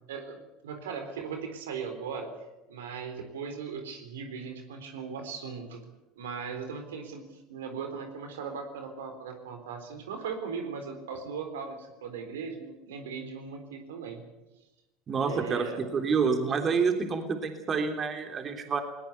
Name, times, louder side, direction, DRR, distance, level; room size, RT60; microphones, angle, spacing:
voice 1, 0.1-2.3 2.7-5.8 6.2-14.3 15.2-15.8, right 6 dB, 75° right, 6 dB, 3.8 m, -38 dB
voice 2, 15.1-18.8, right 5 dB, 35° right, 6 dB, 3.4 m, -28 dB
20.0 x 20.0 x 8.3 m, 0.98 s
hypercardioid pair, 75°, 0 cm